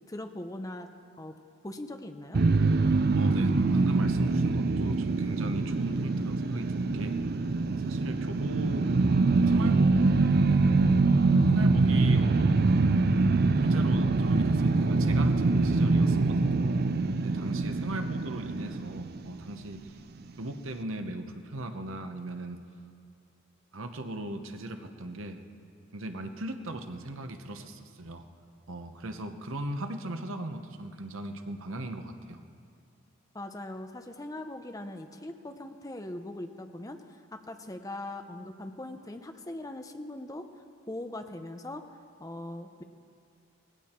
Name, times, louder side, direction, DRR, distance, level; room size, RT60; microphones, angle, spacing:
voice 1, 0.1-0.9 1.2-1.4 1.6-2.4 33.3-40.5 40.9-41.8 42.2-42.8, left 1 dB, 15° left, 7 dB, 0.6 m, -40 dB
sound 1, 2.3-19.5, right 3 dB, 45° right, 0.4 m, -24 dB
voice 2, 3.2-7.2 7.6-8.9 9.5-9.9 11.5-12.7 13.6-16.7 17.2-20.0 20.4-22.6 23.7-25.4 25.9-28.3 28.7-32.4, right 1 dB, 70° right, 7 dB, 1.0 m, -38 dB
18.5 x 15.5 x 4.4 m, 2.4 s
head